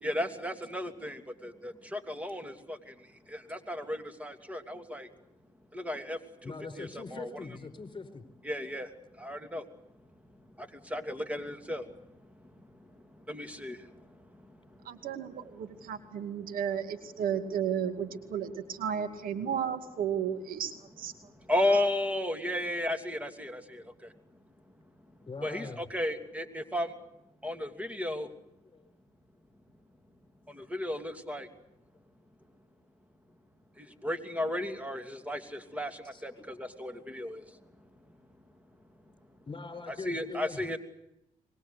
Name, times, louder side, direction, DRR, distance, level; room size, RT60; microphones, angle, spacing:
voice 1, 0.0-5.1 5.7-7.3 8.4-9.6 10.6-12.5 12.8-15.0 15.8-15.9 16.4-16.6 21.2-24.1 25.4-26.9 27.4-28.3 30.5-31.5 33.8-37.6 39.9-40.8, left 1 dB, 10° right, 8 dB, 2.9 m, -35 dB
voice 2, 6.4-8.2 25.3-25.8 28.7-28.8 36.1-36.4 39.5-40.6, left 4 dB, 35° left, 9 dB, 4.6 m, -42 dB
voice 3, 14.8-20.7 21.0-21.1 21.7-21.8, right 8 dB, 80° right, 9 dB, 2.4 m, -33 dB
24.5 x 21.0 x 8.2 m, 0.83 s
cardioid pair, 70°, 15 cm